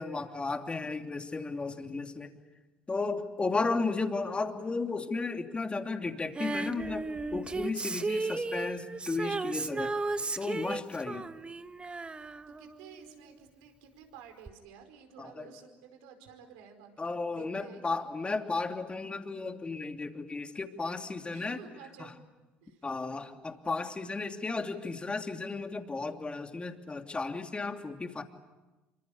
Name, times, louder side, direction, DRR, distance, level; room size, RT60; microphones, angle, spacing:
voice 1, 0.0-2.3 2.9-7.1 7.3-9.9 10.4-11.2 15.2-15.5 17.0-21.6 22.0-22.1 22.8-28.2, left 3 dB, 20° left, 5 dB, 2.9 m, -34 dB
Female singing, 6.3-13.3 14.5-14.6, right 3 dB, 20° right, 1.3 m, -35 dB
voice 2, 12.5-18.0 21.3-22.2 22.6-22.9, right 7 dB, 75° right, 6 dB, 4.9 m, -52 dB
27.0 x 25.0 x 8.5 m, 1.1 s
hypercardioid pair, 65°, 5 cm